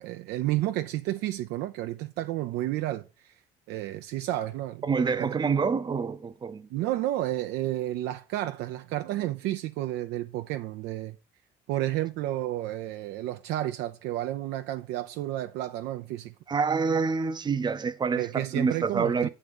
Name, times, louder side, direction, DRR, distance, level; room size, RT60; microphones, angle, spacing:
voice 1, 0.0-3.3 3.7-4.8 5.2-5.4 6.7-11.2 11.7-16.3 18.2-19.3, right 14 dB, 85° right, 0.4 m, -31 dB
voice 2, 4.8-6.7 16.5-19.3, right 5 dB, 25° right, 0.5 m, -27 dB
7.8 x 3.7 x 5.2 m
cardioid pair, 110°, 17 cm